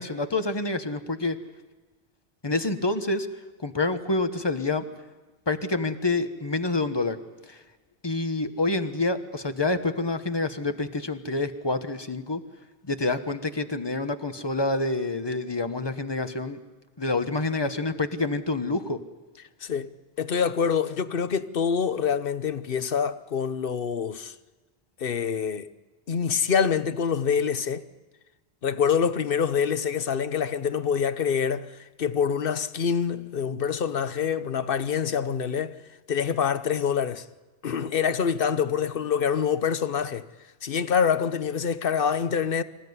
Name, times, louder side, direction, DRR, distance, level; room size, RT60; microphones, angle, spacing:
voice 1, 0.0-1.4 2.4-3.3 3.6-4.8 5.5-7.2 7.4-7.6 8.0-12.4 12.8-16.6 17.0-19.0, left 2 dB, 25° left, 1.2 m, -27 dB
voice 2, 19.6-19.9 20.2-24.3 25.0-25.7 26.1-27.9 28.6-31.7 32.0-35.7 36.1-37.2 37.6-40.3 40.6-42.6, left 7 dB, 60° left, 1.1 m, -26 dB
26.0 x 15.5 x 9.5 m
omnidirectional pair, 1.1 m